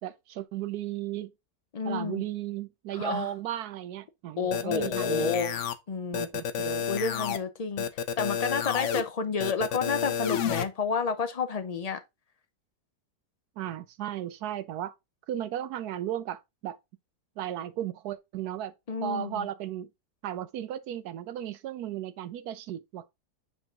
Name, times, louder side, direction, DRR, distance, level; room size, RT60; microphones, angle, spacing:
voice 1, 0.0-1.3 1.8-5.3 6.1-6.9 13.6-14.9 15.3-16.8 17.4-18.7 19.0-19.9 20.2-23.1, right 11 dB, 75° right, 1.1 m, -35 dB
voice 2, 1.7-2.2 2.9-3.3 4.4-5.6 5.9-6.3 6.9-7.9 8.2-12.0 18.9-19.5, left 5 dB, 80° left, 0.3 m, -30 dB
sound 1, 4.5-5.7 6.1-7.4 7.8-9.0 9.4-10.6, left 7 dB, 60° left, 0.9 m, -30 dB
8.1 x 3.9 x 3.7 m
omnidirectional pair, 1.7 m